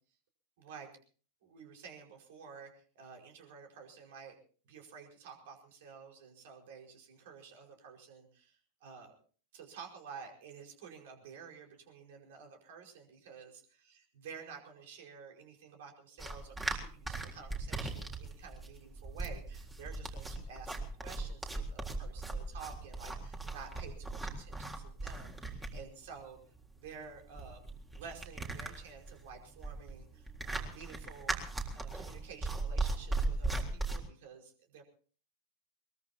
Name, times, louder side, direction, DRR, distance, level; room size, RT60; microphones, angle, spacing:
voice 1, 0.6-0.9 1.4-4.4 4.6-9.2 9.5-13.6 13.9-26.4 26.8-27.6 27.9-31.4 31.7-34.8, right 6 dB, 55° right, 2 dB, 5.0 m, -51 dB
sound 1, 16.2-34.0, right 3 dB, 10° right, 3.7 m, -38 dB
22.5 x 22.0 x 2.9 m, 0.42 s
figure-of-eight pair, 90°, 0 cm